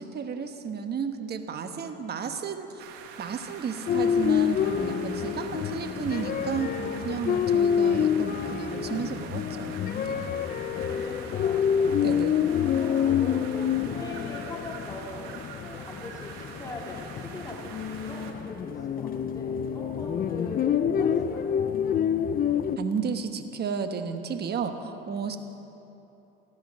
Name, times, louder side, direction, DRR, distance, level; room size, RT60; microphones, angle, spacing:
voice 1, 0.0-2.9 3.2-9.8 10.0-10.3 12.0-12.4 22.8-25.4, right 6 dB, 35° right, 7 dB, 1.2 m, -33 dB
sound 1, 2.8-18.3, right 6 dB, 85° right, 1.5 m, -45 dB
sound 2, 3.9-22.8, left 8 dB, 30° left, 0.5 m, -27 dB
voice 2, 10.2-12.3 12.7-21.6 25.3-25.4, left 1 dB, 10° left, -3 dB, 3.1 m, -42 dB
15.0 x 12.0 x 6.3 m, 3.0 s
supercardioid pair, 110°, 29 cm